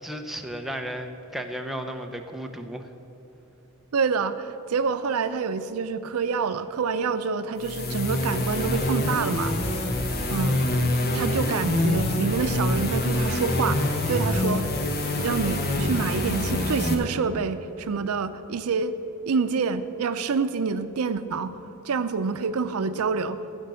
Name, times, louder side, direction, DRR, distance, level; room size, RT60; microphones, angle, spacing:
voice 1, 0.0-2.9, equal, ahead, 3 dB, 0.6 m, -34 dB
voice 2, 3.9-9.6 10.3-10.6 11.1-13.8 14.1-14.7 15.2-18.9 19.3-21.6 21.8-23.4, right 5 dB, 85° right, 11 dB, 0.5 m, -27 dB
sound 1, 7.6-16.9, left 1 dB, 45° left, 1.2 m, -25 dB
15.5 x 5.2 x 7.5 m, 2.9 s
head